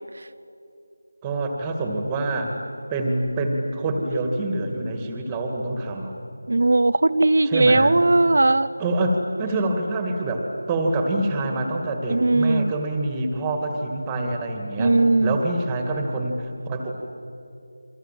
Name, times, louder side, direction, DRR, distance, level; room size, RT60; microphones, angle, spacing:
voice 1, 1.2-2.5 2.9-6.1 7.4-8.0 8.8-17.1, right 2 dB, 10° right, 3 dB, 2.4 m, -26 dB
voice 2, 6.5-8.7 12.1-12.7 14.8-15.4, right 2 dB, 60° right, 13 dB, 0.8 m, -18 dB
28.5 x 24.5 x 7.7 m, 2.6 s
figure-of-eight pair, 170°, 0 cm